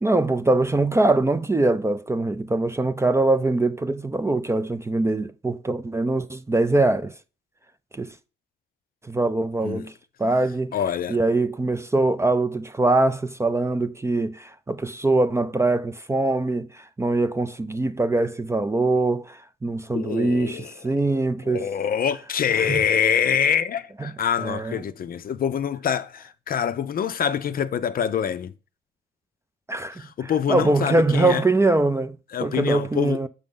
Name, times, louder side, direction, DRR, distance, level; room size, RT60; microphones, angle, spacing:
voice 1, 0.0-7.1 7.9-8.1 9.0-9.9 10.2-10.8 11.1-21.7 22.6-22.8 24.0-24.1 24.4-24.8 29.7-33.3, right 2 dB, 15° right, 0.4 m, -23 dB
voice 2, 10.7-11.2 19.9-20.7 21.5-28.5 30.0-31.4 32.3-33.2, left 8 dB, 45° left, 0.5 m, -25 dB
6.9 x 5.3 x 3.7 m
cardioid pair, 90°, 20 cm